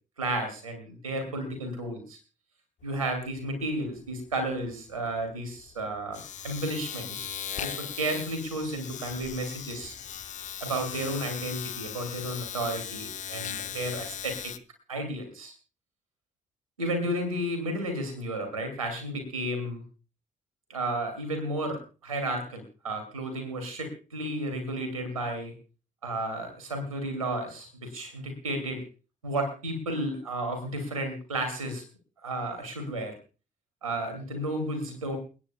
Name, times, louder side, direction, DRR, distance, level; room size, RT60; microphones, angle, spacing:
voice 1, 0.2-2.2 2.8-6.2 6.4-7.3 7.6-10.0 10.6-14.5 14.9-15.5 16.8-19.8 20.7-25.5 26.0-28.8 29.2-31.8 32.2-33.2 33.8-35.2, right 1 dB, 85° right, 6 dB, 2.3 m, -32 dB
Domestic sounds home sounds, 2.8-3.0 3.3-14.6, left 9 dB, 45° left, 0.7 m, -38 dB
29.0 x 9.8 x 2.2 m, 0.34 s
figure-of-eight pair, 40°, 17 cm